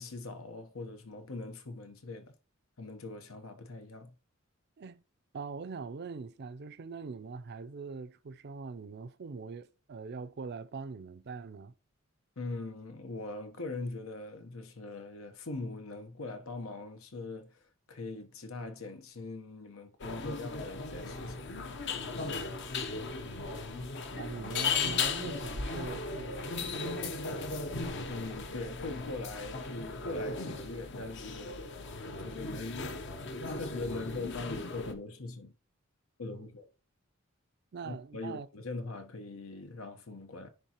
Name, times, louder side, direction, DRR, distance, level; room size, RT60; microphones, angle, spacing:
voice 1, 0.0-2.3 2.8-4.1 12.4-17.6 17.9-21.5 22.1-22.7 22.9-23.5 28.1-31.6 32.2-32.9 33.6-35.5 36.2-36.7 37.8-40.5, left 3 dB, 90° left, 1.0 m, -41 dB
voice 2, 5.3-11.7 24.2-27.7 36.3-36.5 37.7-38.5, right 4 dB, 55° right, 0.5 m, -43 dB
sound 1, 20.0-34.9, left 4 dB, 60° left, 0.8 m, -37 dB
10.0 x 3.7 x 2.9 m
head